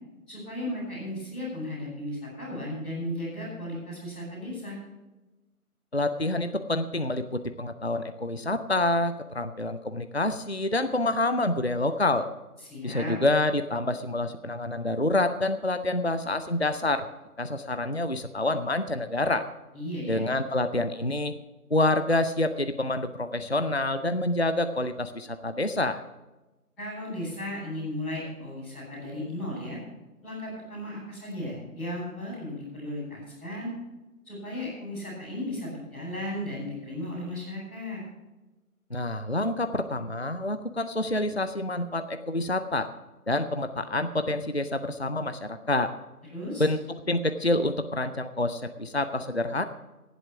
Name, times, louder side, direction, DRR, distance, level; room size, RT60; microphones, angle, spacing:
voice 1, 0.3-4.8 12.6-13.2 19.7-20.2 26.8-29.8 30.2-33.7 34.2-38.0 46.3-46.6, left 1 dB, ahead, -21 dB, 4.3 m, -35 dB
voice 2, 5.9-12.3 12.8-17.1 17.4-19.4 20.1-21.3 21.7-26.0 38.9-42.9 43.3-45.9 46.6-49.6, left 2 dB, 45° left, 10 dB, 0.6 m, -27 dB
18.0 x 8.1 x 6.0 m, 1.1 s
figure-of-eight pair, 175°, 46 cm